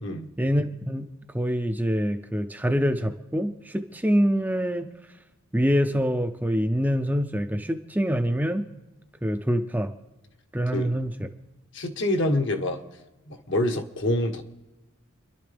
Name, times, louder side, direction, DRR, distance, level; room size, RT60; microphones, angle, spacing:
voice 1, 0.4-1.1 1.3-4.9 5.5-8.6 9.2-9.9 10.5-11.3, equal, 10° right, 6 dB, 0.5 m, -25 dB
voice 2, 11.7-12.8 13.3-14.4, left 1 dB, 60° left, 4 dB, 1.3 m, -26 dB
29.5 x 11.5 x 3.5 m, 1.1 s
head